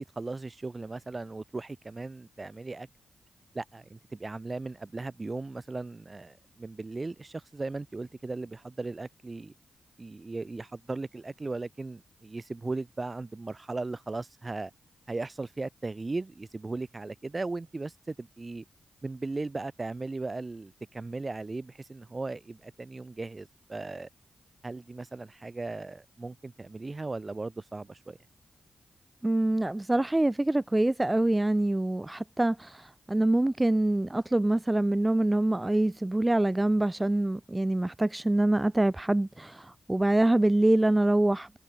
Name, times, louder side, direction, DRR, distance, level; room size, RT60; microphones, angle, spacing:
voice 1, 0.0-2.9 3.5-9.5 10.0-14.7 15.1-18.6 19.0-24.1 24.6-28.2, right 3 dB, 35° right, 4.8 m, -37 dB
voice 2, 29.2-41.6, right 1 dB, 20° right, 2.0 m, -25 dB
supercardioid pair, 40°, 0 cm